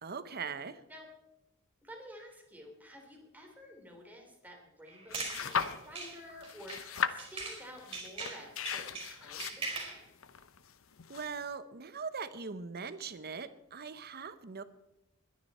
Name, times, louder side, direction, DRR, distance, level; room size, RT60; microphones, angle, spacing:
voice 1, 0.0-0.8 11.1-14.6, right 5 dB, 50° right, 13 dB, 0.9 m, -41 dB
voice 2, 1.8-10.0, equal, 10° right, 1 dB, 3.5 m, -51 dB
sound 1, 4.9-7.6 7.9-10.0, right 3 dB, 25° right, 4.8 m, -41 dB
sound 2, 5.1-6.1 6.4-11.5, left 7 dB, 70° left, 0.8 m, -37 dB
21.5 x 10.5 x 4.3 m, 0.94 s
head